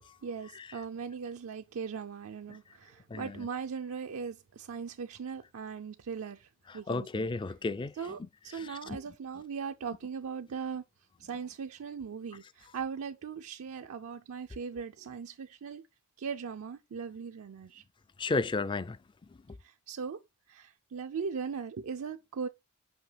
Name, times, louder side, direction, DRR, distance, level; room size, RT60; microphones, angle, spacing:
voice 1, 0.2-7.3 7.9-10.8 11.2-15.8 16.2-17.8 19.6-20.2 20.5-22.5, right 6 dB, 80° right, 0.4 m, -39 dB
voice 2, 3.1-3.5 6.7-7.9 8.5-9.0 18.2-19.0, left 3 dB, 20° left, 0.3 m, -33 dB
5.8 x 5.5 x 3.2 m
head